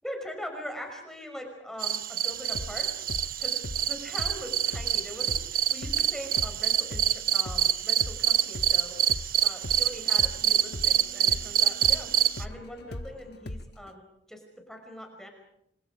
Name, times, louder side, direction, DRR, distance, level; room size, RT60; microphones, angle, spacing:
voice 1, 0.0-2.9 3.4-3.5 3.8-14.0 14.3-14.4 14.7-15.3, equal, 5° left, 3 dB, 5.6 m, -42 dB
sound 1, 1.8-12.4, right 9 dB, 50° right, 0.9 m, -26 dB
sound 2, 2.4-9.3 9.6-13.9, left 1 dB, 60° left, 1.1 m, -39 dB
sound 3, 8.6-13.0, equal, 75° left, 4.7 m, -59 dB
28.5 x 27.0 x 5.0 m, 0.77 s
head